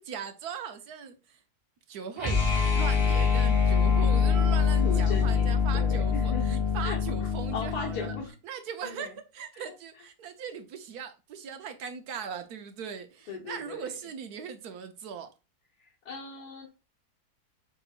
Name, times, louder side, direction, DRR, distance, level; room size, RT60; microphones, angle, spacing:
voice 1, 0.0-1.4 1.9-2.4 2.7-8.1 8.4-15.3, right 7 dB, 75° right, 1.3 m, -39 dB
sound 1, 2.2-8.3, left 6 dB, 15° left, 1.8 m, -24 dB
voice 2, 4.1-8.3 8.8-9.2 9.5-10.0 13.3-14.0 15.8-16.7, left 4 dB, 75° left, 1.8 m, -39 dB
6.9 x 3.0 x 2.4 m
omnidirectional pair, 1.7 m